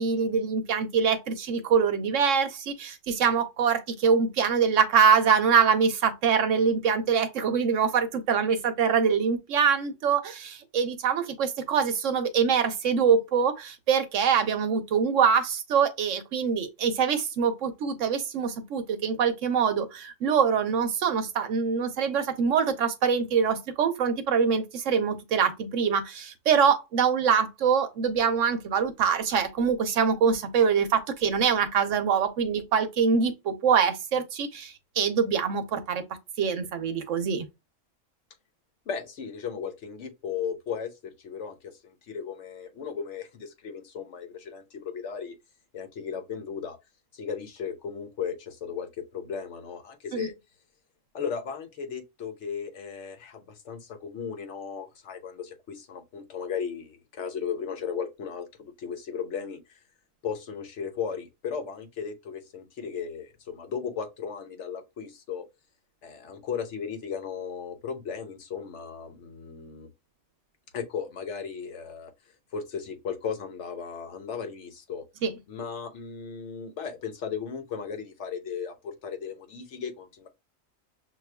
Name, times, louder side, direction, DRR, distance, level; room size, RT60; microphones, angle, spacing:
voice 1, 0.0-36.0 36.4-37.5 50.1-50.3 75.2-75.3, right 6 dB, 70° right, 1.0 m, -24 dB
voice 2, 38.9-45.3 45.7-46.8 47.1-50.3 51.1-58.5 58.8-59.8 60.2-65.4 66.0-69.9 70.7-72.1 72.5-75.0 75.5-80.3, left 6 dB, 65° left, 1.0 m, -36 dB
6.1 x 2.4 x 2.2 m
omnidirectional pair, 1.4 m